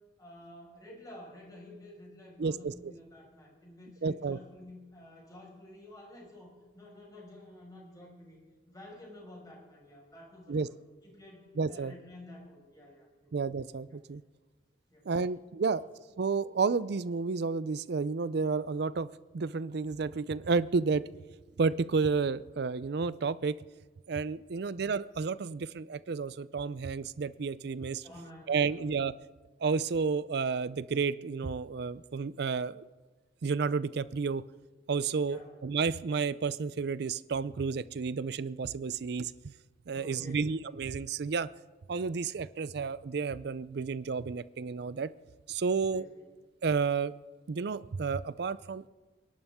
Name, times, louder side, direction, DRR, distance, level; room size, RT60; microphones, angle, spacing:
voice 1, 0.2-8.4 8.7-10.7 11.0-13.4 13.9-14.0 14.9-15.1 15.7-15.9 24.4-24.8 28.0-28.9 35.3-35.6 39.9-40.6 45.7-46.3, left 1 dB, 20° left, -3 dB, 5.3 m, -51 dB
voice 2, 2.4-2.9 4.0-4.4 10.5-10.7 11.6-11.9 13.3-14.2 15.1-15.8 16.2-19.1 19.3-21.0 21.6-23.6 24.1-28.0 28.5-29.1 29.6-32.8 33.4-34.4 34.9-39.5 39.9-41.5 41.9-45.1 45.5-46.1 46.6-47.1 47.5-48.9, right 5 dB, 60° right, 17 dB, 0.5 m, -31 dB
27.5 x 11.5 x 3.6 m, 1.3 s
head